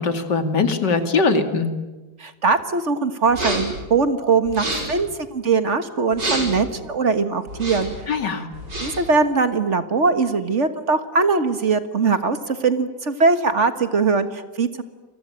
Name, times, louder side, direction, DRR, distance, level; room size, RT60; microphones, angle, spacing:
voice 1, 0.0-1.7 8.1-8.5, left 4 dB, 80° left, 8 dB, 3.0 m, -21 dB
voice 2, 2.2-7.9 8.8-14.8, right 4 dB, 45° right, 10 dB, 1.8 m, -21 dB
sound 1, 3.3-3.8 4.4-5.0 6.1-6.7 7.5-8.0 8.5-9.1, right 1 dB, 85° right, 6.8 m, -28 dB
29.0 x 23.0 x 8.9 m, 1.2 s
omnidirectional pair, 1.8 m